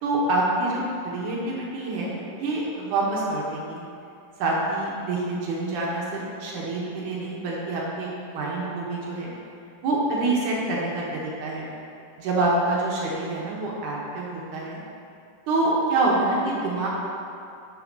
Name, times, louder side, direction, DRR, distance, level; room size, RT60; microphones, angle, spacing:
voice 1, 0.0-3.8 4.4-9.3 9.8-11.7 12.2-14.8 15.5-16.9, right 2 dB, 70° right, -4 dB, 2.3 m, -26 dB
10.5 x 7.3 x 2.8 m, 2.6 s
omnidirectional pair, 4.1 m